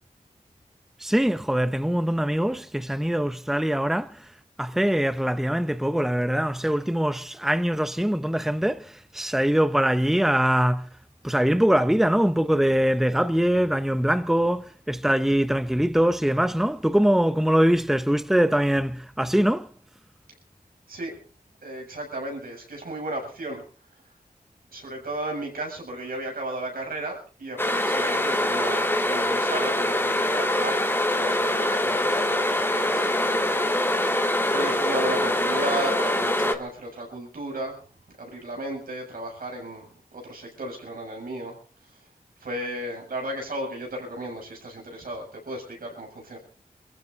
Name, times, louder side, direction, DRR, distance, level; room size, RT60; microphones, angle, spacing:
voice 1, 1.0-4.2 4.6-10.9 11.2-19.7, equal, ahead, 0.9 m, -23 dB
voice 2, 21.6-23.6 24.7-30.8 31.2-33.6 34.5-37.8 38.2-42.0 42.4-46.4, right 1 dB, 80° right, 7.5 m, -34 dB
sound 1, 27.6-36.5, left 1 dB, 15° left, 2.2 m, -24 dB
24.0 x 14.5 x 4.0 m
cardioid pair, 50°, 15 cm